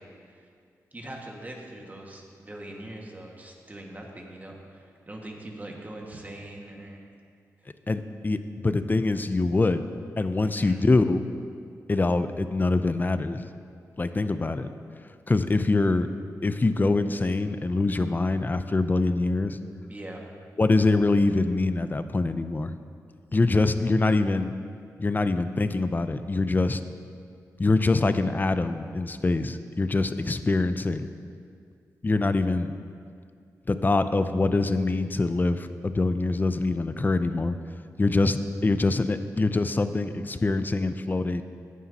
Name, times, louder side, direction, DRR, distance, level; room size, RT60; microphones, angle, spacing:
voice 1, 0.9-7.1 10.4-10.8 19.9-20.2, right 1 dB, 25° right, 0 dB, 1.7 m, -42 dB
voice 2, 7.9-9.8 10.2-11.2 11.9-13.4 14.0-14.7 15.3-16.1 16.4-19.6 20.6-22.7 23.3-24.5 25.0-26.8 27.6-31.1 32.0-32.7 33.7-37.6 38.0-41.4, left 3 dB, 30° left, 11 dB, 0.5 m, -24 dB
14.5 x 9.3 x 2.9 m, 2.2 s
cardioid pair, 60°, 7 cm